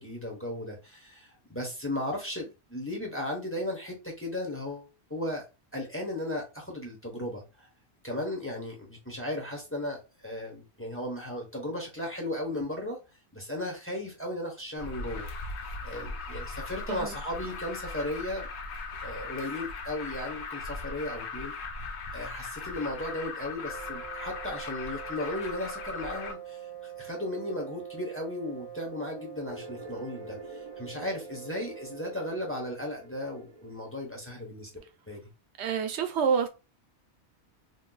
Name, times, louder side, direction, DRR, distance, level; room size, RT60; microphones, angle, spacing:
voice 1, 0.0-5.5 5.7-7.7 8.0-13.0 13.3-15.6 15.8-18.5 19.0-21.5 22.1-35.2, left 1 dB, 15° left, 0.8 m, -36 dB
Alarm, 14.8-26.3, left 3 dB, 85° left, 0.9 m, -38 dB
sound 1, 23.5-32.4, right 11 dB, 45° left, 0.8 m, -44 dB
sound 2, 29.5-34.7, equal, 35° right, 0.4 m, -48 dB
voice 2, 35.6-36.5, right 6 dB, 85° right, 0.9 m, -28 dB
2.6 x 2.2 x 3.8 m
omnidirectional pair, 1.1 m